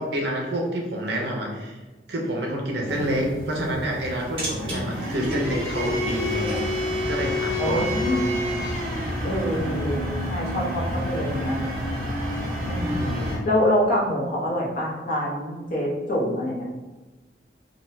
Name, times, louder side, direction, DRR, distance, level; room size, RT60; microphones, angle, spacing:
voice 1, 0.0-1.8 2.1-6.5 7.1-7.9 12.9-13.4, right 1 dB, 65° right, -1 dB, 0.7 m, -28 dB
voice 2, 2.9-3.2 4.4-4.9 7.6-8.2 9.2-10.0 10.3-11.7 12.6-13.1 13.4-16.7, equal, 45° left, -5 dB, 0.9 m, -26 dB
sound 1, 2.9-13.4, left 1 dB, 30° right, 1.3 m, -28 dB
4.0 x 2.2 x 2.7 m, 1.2 s
head